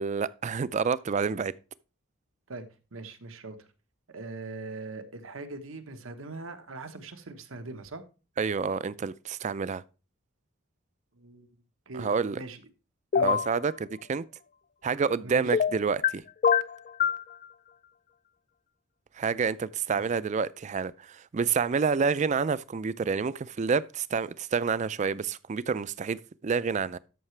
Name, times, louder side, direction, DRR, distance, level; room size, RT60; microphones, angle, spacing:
voice 1, 0.0-1.5 8.4-9.8 11.9-12.4 13.2-14.2 14.8-16.2 19.2-27.0, right 5 dB, 35° right, 0.4 m, -28 dB
voice 2, 2.9-3.7 4.1-8.0 11.2-11.5 11.9-12.1 12.4-12.6 13.1-13.4 15.2-15.6 19.9-20.1, right 3 dB, 85° right, 1.2 m, -41 dB
sound 1, 13.1-13.5 15.5-16.1 16.4-17.2, left 7 dB, 40° left, 0.4 m, -23 dB
13.0 x 5.8 x 3.3 m
head